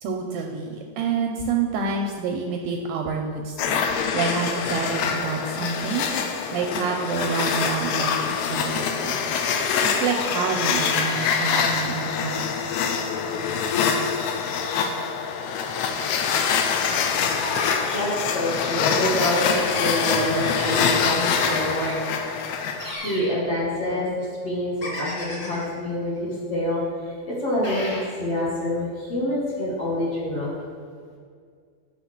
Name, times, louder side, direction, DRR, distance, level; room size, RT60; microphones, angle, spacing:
voice 1, 0.0-3.8 4.1-9.2 9.8-12.6, right 5 dB, 80° right, 1 dB, 2.1 m, -28 dB
sound 1, 3.6-22.9, left 6 dB, 85° left, 2.5 m, -25 dB
sound 2, 17.4-18.1 19.5-21.3 22.8-23.3 24.8-25.7 27.6-28.1, left 1 dB, 30° left, 2.3 m, -34 dB
voice 2, 17.9-22.2 22.9-30.5, left 1 dB, 50° left, -7 dB, 2.2 m, -27 dB
8.4 x 6.4 x 5.9 m, 2.1 s
omnidirectional pair, 4.6 m